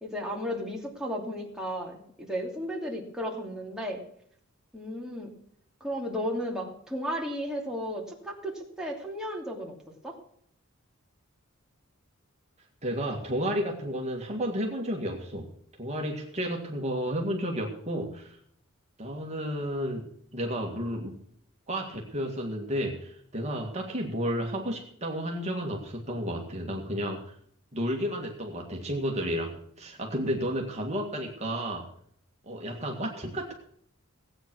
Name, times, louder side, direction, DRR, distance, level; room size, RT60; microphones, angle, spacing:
voice 1, 0.0-4.0 4.7-5.3 5.8-9.7 10.0-10.2, equal, 5° right, -1 dB, 2.6 m, -34 dB
voice 2, 12.8-15.5 15.8-18.4 19.0-21.1 21.7-27.3 27.7-31.9 32.4-33.5, equal, 35° right, 0 dB, 2.0 m, -32 dB
17.0 x 9.1 x 6.2 m, 0.64 s
head